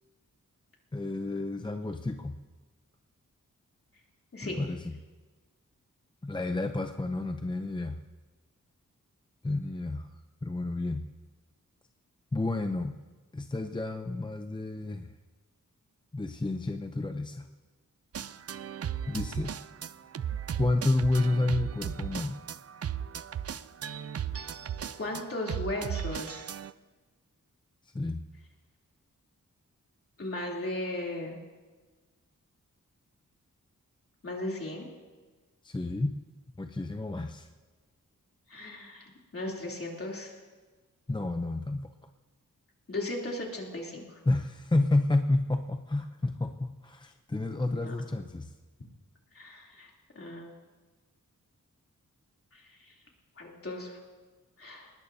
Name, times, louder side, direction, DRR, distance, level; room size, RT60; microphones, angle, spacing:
voice 1, 0.9-2.4 4.4-5.0 6.2-8.0 9.4-10.1 10.4-11.1 12.3-12.9 13.3-15.1 16.1-17.5 19.1-19.6 20.6-22.4 27.9-28.3 35.6-36.2 36.6-37.5 41.1-41.9 44.3-48.5, left 2 dB, 15° left, 6 dB, 0.6 m, -30 dB
sound 1, 18.1-26.7, right 9 dB, 50° right, 0.5 m, -36 dB
voice 2, 25.0-26.5 30.2-31.4 34.2-34.9 38.5-40.3 42.9-44.2 47.7-47.9 49.3-49.9 50.1-50.5 52.5-52.9 53.4-54.0 54.6-54.9, left 1 dB, 45° left, -2 dB, 3.1 m, -37 dB
23.5 x 20.0 x 2.7 m, 1.3 s
wide cardioid pair, 130°, 32 cm